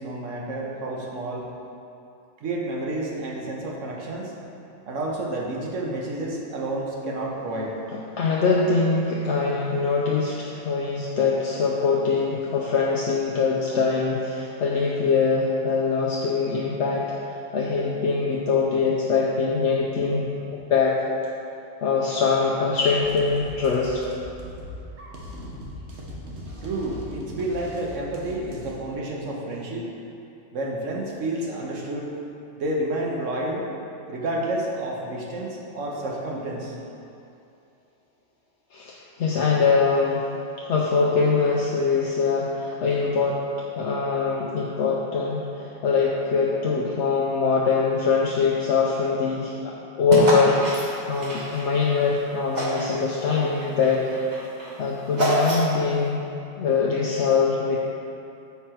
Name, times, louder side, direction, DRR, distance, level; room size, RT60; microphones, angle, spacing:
voice 1, 0.0-1.5 2.4-4.3 4.9-7.7 26.6-29.9 30.5-32.1 32.6-33.6 34.1-36.7, right 1 dB, 85° right, -2 dB, 1.4 m, -30 dB
voice 2, 8.2-20.3 20.5-21.0 21.8-24.0 38.7-40.3 40.7-43.4 43.8-54.1 54.8-56.2 56.6-57.8, left 4 dB, 70° left, -3 dB, 1.0 m, -23 dB
sound 1, 22.9-28.7, left 1 dB, 65° right, 1.3 m, -40 dB
sound 2, 50.1-52.1 52.5-53.0 53.3-55.9, right 1 dB, 35° right, 1.3 m, -26 dB
7.1 x 5.8 x 4.4 m, 2.7 s
omnidirectional pair, 1.3 m